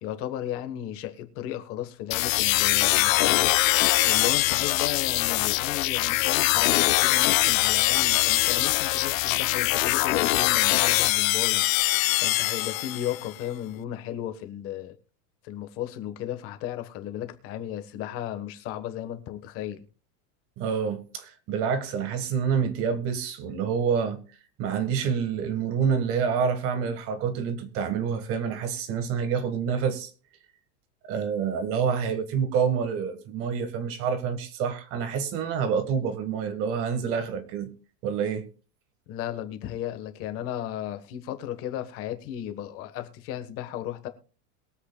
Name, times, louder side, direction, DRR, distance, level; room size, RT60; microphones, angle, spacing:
voice 1, 0.0-3.5 4.0-11.6 12.2-15.0 15.4-19.8 39.1-44.1, left 11 dB, 30° left, 1.3 m, -34 dB
sound 1, 2.1-13.3, left 20 dB, 60° left, 0.5 m, -23 dB
voice 2, 20.6-24.2 24.6-30.1 31.1-37.7 38.0-38.5, right 6 dB, 30° right, 1.5 m, -27 dB
22.0 x 7.9 x 2.3 m
supercardioid pair, 175°, 45 cm